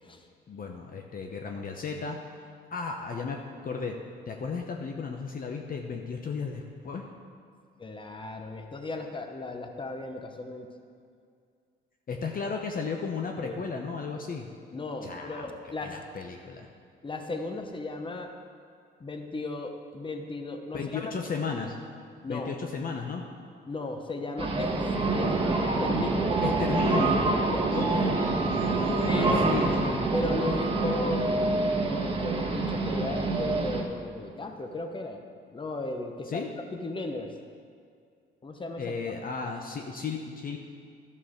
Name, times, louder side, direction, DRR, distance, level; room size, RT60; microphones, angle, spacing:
voice 1, 0.5-2.2 2.7-4.0 4.3-7.0 12.1-14.5 15.0-16.7 20.7-21.7 22.3-23.2 26.4-27.2 27.7-30.1 36.3-36.5 38.8-40.6, left 5 dB, 45° left, 2 dB, 0.9 m, -34 dB
voice 2, 7.8-10.7 13.4-13.6 14.7-16.0 17.0-18.3 19.0-21.1 22.2-22.5 23.7-24.8 25.1-25.3 25.6-26.6 27.3-28.2 29.0-29.4 30.1-36.5 36.7-37.3 38.4-38.9, left 2 dB, 25° left, 4 dB, 1.1 m, -36 dB
sound 1, 24.4-33.8, right 3 dB, 25° right, 1.7 m, -26 dB
12.0 x 5.5 x 6.5 m, 2.3 s
cardioid pair, 90°, 20 cm